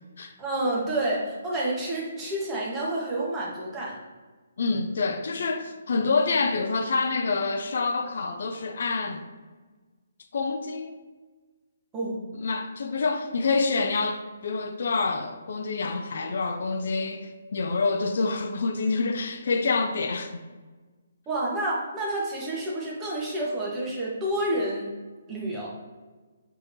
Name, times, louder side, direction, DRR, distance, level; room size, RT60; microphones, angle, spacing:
voice 1, 0.2-4.0 11.9-12.3 21.3-24.9 25.3-25.7, right 1 dB, 20° right, 1.3 m, -29 dB
voice 2, 4.6-9.2 10.3-10.9 12.3-20.3, left 4 dB, 65° left, 0.4 m, -27 dB
5.4 x 3.6 x 2.7 m
figure-of-eight pair, 145°, 0 cm